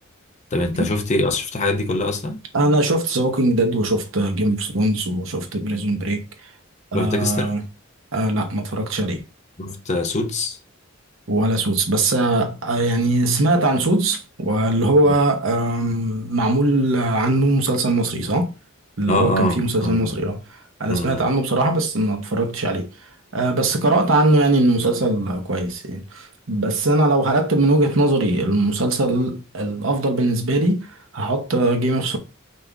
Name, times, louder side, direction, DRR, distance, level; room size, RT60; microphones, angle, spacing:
voice 1, 0.5-2.4 6.9-7.5 9.6-10.6 15.1-15.2 19.1-20.1 20.9-21.3, left 2 dB, 35° left, 0.7 m, -23 dB
voice 2, 2.5-6.2 6.9-7.6 8.1-9.2 11.3-18.5 19.0-22.9 23.3-30.9 31.1-32.2, right 2 dB, 65° right, 1.0 m, -20 dB
5.5 x 2.6 x 3.4 m
head